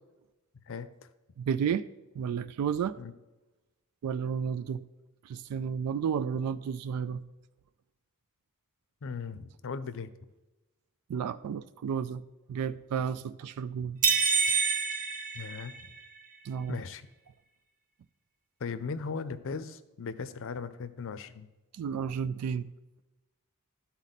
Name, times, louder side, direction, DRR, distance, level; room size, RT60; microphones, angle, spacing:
voice 1, 1.4-1.8 2.1-3.0 4.0-4.9 5.2-7.3 11.1-14.0 16.4-16.8 21.7-22.7, right 7 dB, 85° right, 13 dB, 0.3 m, -32 dB
voice 2, 9.0-10.1 15.3-15.9 16.7-17.1 18.6-21.5, left 5 dB, 60° left, 13 dB, 0.5 m, -38 dB
sound 1, 14.0-16.2, right 5 dB, 35° right, 0.7 m, -27 dB
12.5 x 4.1 x 4.1 m, 1.1 s
head